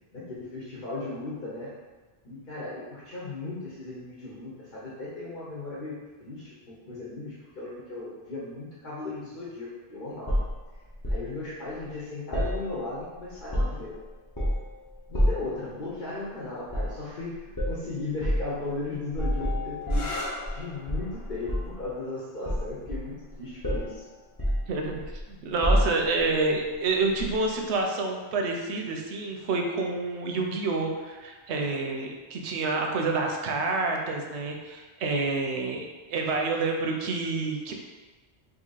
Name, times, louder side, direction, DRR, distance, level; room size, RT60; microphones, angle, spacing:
voice 1, 0.1-1.7 2.2-10.5 11.1-13.9 15.1-20.2 20.5-24.1, left 2 dB, 55° left, -7 dB, 0.9 m, -36 dB
sound 1, 10.3-11.3 12.3-13.1 13.3-13.9 14.3-14.7 15.1-15.5 16.7-17.0 17.5-17.8 18.2-18.5 19.1-20.6 20.9-21.8 22.4-23.3 23.6-23.9 24.4-25.2 25.6-26.2 27.2-27.3, equal, 25° left, 0.7 m, -28 dB
sound 2, 19.8-27.3 28.3-28.8 32.3-32.7, left 2 dB, 90° left, 0.9 m, -44 dB
voice 2, 24.7-25.0 25.3-37.7, right 3 dB, 80° right, 1 dB, 0.9 m, -28 dB
2.8 x 2.6 x 3.9 m, 1.3 s
omnidirectional pair, 1.1 m